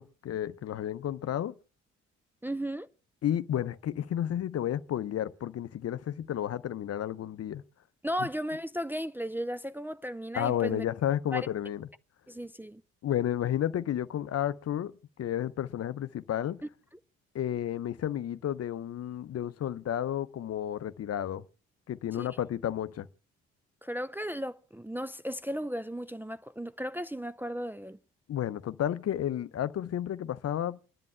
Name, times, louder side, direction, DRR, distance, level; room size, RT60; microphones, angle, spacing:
voice 1, 0.0-1.5 3.2-7.6 10.3-11.9 13.0-16.6 17.3-21.4 21.9-23.1 28.3-31.0, left 11 dB, 50° left, 0.8 m, -32 dB
voice 2, 2.4-2.9 8.0-10.8 11.3-11.5 12.3-12.8 22.2-22.3 23.8-28.0, equal, 5° right, 0.6 m, -35 dB
29.0 x 10.5 x 2.2 m
hypercardioid pair, 45°, 33 cm